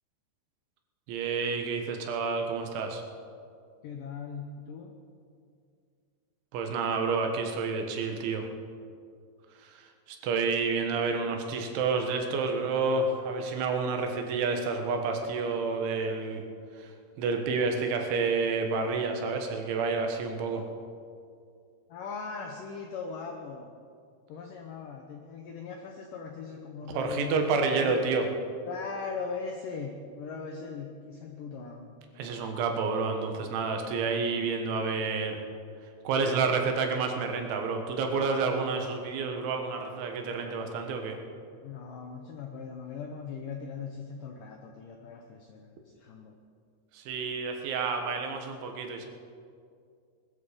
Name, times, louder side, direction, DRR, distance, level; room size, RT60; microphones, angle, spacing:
voice 1, 1.1-3.0 6.5-8.5 9.6-16.4 16.7-20.6 26.9-28.3 32.2-35.4 36.1-41.2 46.9-49.1, right 4 dB, 80° right, 4 dB, 3.8 m, -29 dB
voice 2, 3.8-4.9 21.9-23.7 24.3-28.0 28.7-31.9 41.6-46.3, left 5 dB, 90° left, 2 dB, 1.8 m, -39 dB
20.0 x 13.5 x 5.1 m, 2.3 s
omnidirectional pair, 5.3 m